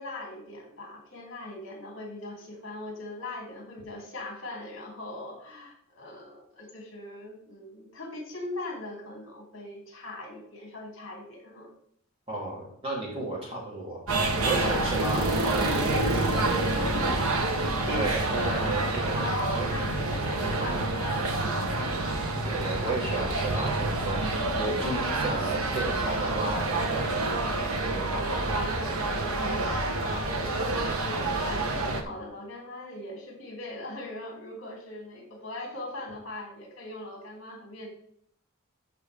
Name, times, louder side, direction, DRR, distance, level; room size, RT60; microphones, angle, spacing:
voice 1, 0.0-11.7 14.4-17.5 18.7-21.7 23.3-23.6 27.1-27.6 28.1-37.9, left 2 dB, 60° left, 0 dB, 3.0 m, -40 dB
voice 2, 12.3-16.0 17.9-19.7 22.4-27.2 27.6-28.7 30.4-30.6, right 2 dB, 25° right, -4 dB, 3.1 m, -34 dB
sound 1, 14.1-32.0, right 2 dB, 80° right, 1.2 m, -28 dB
13.5 x 5.3 x 3.6 m, 0.67 s
head